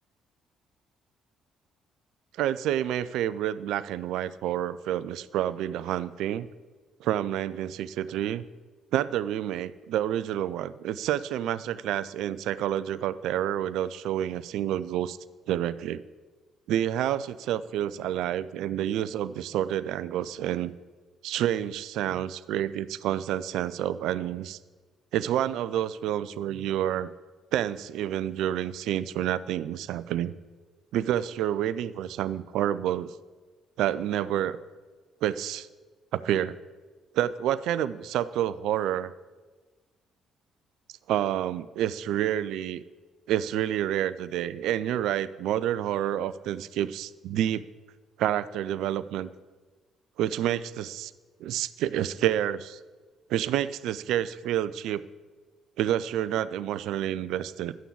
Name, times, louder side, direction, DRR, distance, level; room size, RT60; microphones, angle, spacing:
voice 1, 2.4-6.5 7.0-8.4 8.9-15.2 15.5-16.0 16.7-20.7 21.2-24.6 25.1-27.1 27.5-30.3 30.9-33.1 33.8-34.6 35.2-35.7 36.1-36.6 37.1-39.1 41.1-42.8 43.3-47.6 48.2-49.3 50.2-51.1 51.4-52.8 53.3-55.0 55.8-57.7, right 11 dB, 60° right, 15 dB, 0.5 m, -28 dB
12.5 x 9.1 x 8.5 m, 1.3 s
figure-of-eight pair, 45°, 0 cm